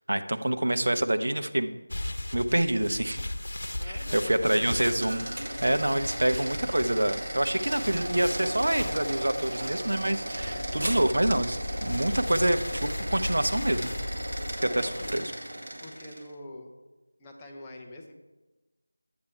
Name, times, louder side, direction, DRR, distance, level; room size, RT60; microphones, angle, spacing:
voice 1, 0.1-1.7 2.3-3.2 3.8-5.2 5.6-13.9 14.8-15.2, right 1 dB, 75° right, 9 dB, 0.8 m, -26 dB
sound 1, 1.9-15.2, left 1 dB, 65° left, 1.0 m, -38 dB
voice 2, 3.7-4.8 14.6-15.1 15.8-16.7 17.2-18.1, left 2 dB, 10° left, -1 dB, 0.7 m, -44 dB
sound 2, 4.6-16.3, right 1 dB, 50° right, 2.1 m, -36 dB
sound 3, 10.3-14.6, left 1 dB, 30° left, 1.9 m, -36 dB
11.5 x 8.7 x 4.5 m, 1.2 s
figure-of-eight pair, 175°, 0 cm